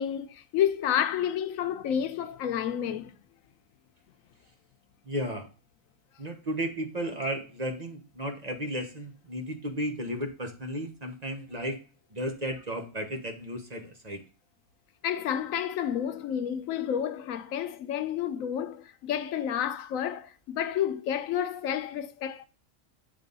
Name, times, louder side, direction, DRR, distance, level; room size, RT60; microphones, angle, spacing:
voice 1, 0.0-3.1 15.0-22.5, left 9 dB, 85° left, 1.0 m, -30 dB
voice 2, 5.0-5.5 6.2-11.8 12.1-14.2, equal, 35° right, 1.1 m, -34 dB
8.2 x 3.4 x 5.3 m
omnidirectional pair, 1.4 m